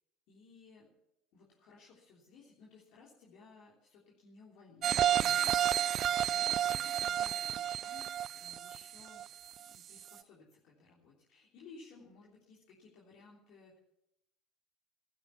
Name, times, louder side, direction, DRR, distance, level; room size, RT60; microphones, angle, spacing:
voice 1, 0.3-0.9 1.3-5.5 6.3-9.2 9.6-13.8, left 4 dB, 60° left, -5 dB, 3.3 m, -58 dB
sound 1, 4.8-9.6 10.0-10.1, right 10 dB, 45° right, 0.5 m, -31 dB
15.5 x 12.0 x 6.9 m, 0.84 s
figure-of-eight pair, 65°, 0 cm